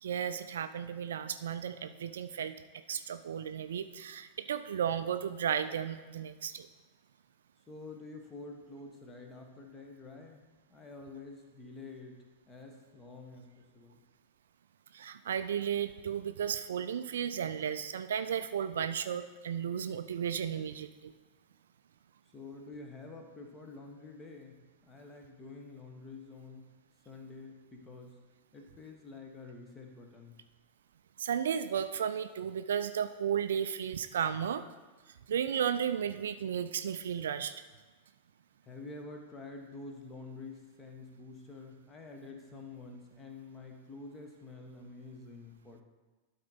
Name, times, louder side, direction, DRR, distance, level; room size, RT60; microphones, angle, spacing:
voice 1, 0.0-2.6 2.9-6.7 14.9-21.1 31.2-34.6 35.3-37.5, right 8 dB, 65° right, 11 dB, 0.3 m, -34 dB
voice 2, 7.7-10.4 10.7-14.0 22.3-26.7 27.0-28.2 28.5-30.3 38.6-45.8, left 3 dB, 20° left, 3 dB, 1.3 m, -48 dB
12.0 x 4.3 x 3.9 m, 1.3 s
figure-of-eight pair, 90°, 0 cm